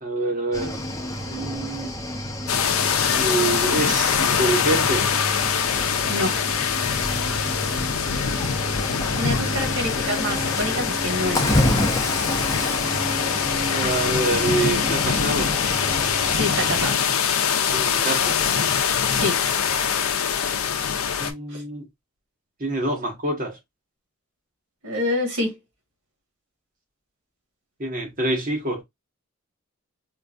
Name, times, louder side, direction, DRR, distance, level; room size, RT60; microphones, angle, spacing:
voice 1, 0.0-0.9 1.3-1.9 3.2-5.1 8.2-8.3 13.7-15.5 17.7-18.4 21.2-21.8 22.6-23.6 27.8-28.8, right 2 dB, 40° right, 1.1 m, -26 dB
Cricket / Waves surf, 0.5-16.8, left 1 dB, 15° left, 0.6 m, -29 dB
sound 1, 2.5-21.3, left 7 dB, 80° left, 0.5 m, -23 dB
voice 2, 6.1-6.4 9.2-11.9 16.3-17.0 19.1-19.4 21.5-21.6 24.8-25.6, left 1 dB, 85° right, 1.6 m, -27 dB
4.4 x 2.2 x 2.4 m
head